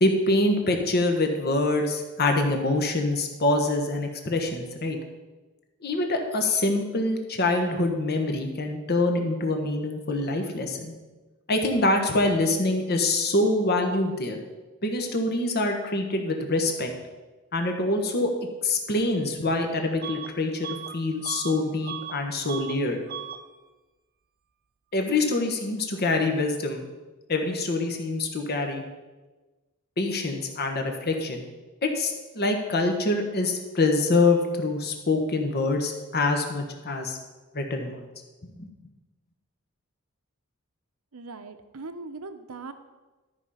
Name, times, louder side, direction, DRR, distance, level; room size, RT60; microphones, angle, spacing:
voice 1, 0.0-5.0 5.8-10.9 11.5-14.4 14.8-16.9 17.5-18.3 18.6-23.0 24.9-26.9 27.3-28.8 30.0-31.4 31.8-37.2 37.5-38.0 38.6-38.7, left 2 dB, 50° left, 4 dB, 1.2 m, -25 dB
Bus / Alarm, 20.0-20.3 20.6-22.2 22.5-22.8 23.1-23.4, right 9 dB, 45° right, 0.4 m, -37 dB
voice 2, 41.1-42.7, right 3 dB, 75° right, 9 dB, 0.8 m, -40 dB
13.0 x 5.0 x 5.6 m, 1.2 s
head